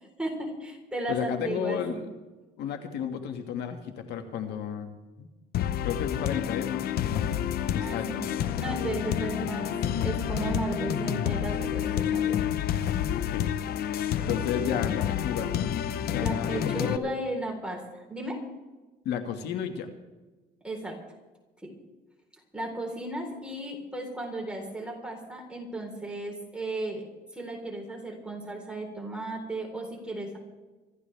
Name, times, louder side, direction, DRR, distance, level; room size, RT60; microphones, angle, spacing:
voice 1, 0.0-2.0 7.8-9.7 10.0-12.4 14.2-14.4 16.2-18.4 20.6-21.0 21.6-21.7 22.5-27.0 27.3-30.4, right 2 dB, 5° right, 0 dB, 3.9 m, -35 dB
voice 2, 1.1-2.1 2.6-5.3 5.8-8.1 13.1-13.5 14.3-15.5 16.1-17.1 19.0-19.9, left 8 dB, 80° left, 6 dB, 1.8 m, -33 dB
sound 1, 5.5-17.0, left 10 dB, 65° left, 0.9 m, -29 dB
26.0 x 13.5 x 3.4 m, 1.2 s
cardioid pair, 110°, 17 cm